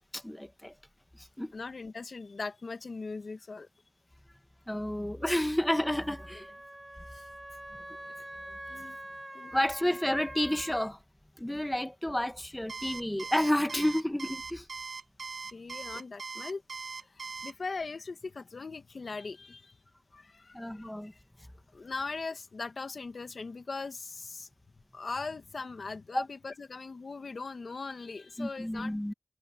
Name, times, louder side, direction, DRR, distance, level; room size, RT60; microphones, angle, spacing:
voice 1, 0.1-0.7 1.2-1.5 4.7-6.5 9.5-11.0 11.4-14.7 20.5-21.1 26.1-26.2 28.4-29.1, left 1 dB, 10° left, 1.1 m, -30 dB
voice 2, 1.5-3.7 7.1-7.3 8.6-9.0 9.3-9.5 15.5-16.6 17.0-19.8 20.1-21.2 21.7-24.5 24.9-29.0, left 4 dB, 70° left, 1.3 m, -40 dB
Wind instrument woodwind instrument, 5.8-10.9, right 1 dB, 15° right, 0.7 m, -45 dB
Alarm, 12.7-17.5, right 4 dB, 90° right, 0.4 m, -40 dB
wide cardioid pair, 80°, 0 cm